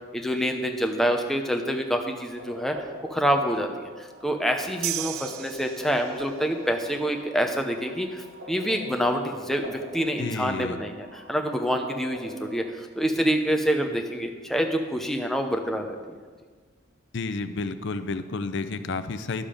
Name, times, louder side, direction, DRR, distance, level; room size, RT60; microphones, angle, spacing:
voice 1, 0.1-2.8 3.1-16.2, equal, ahead, 3 dB, 0.7 m, -27 dB
sound 1, 2.4-12.7, equal, 60° right, 1.7 m, -43 dB
sound 2, 4.8-6.4, right 14 dB, 85° right, 0.4 m, -34 dB
voice 2, 10.2-10.8 17.1-19.5, left 3 dB, 60° left, 11 dB, 0.5 m, -31 dB
12.0 x 7.2 x 5.1 m, 1.5 s
head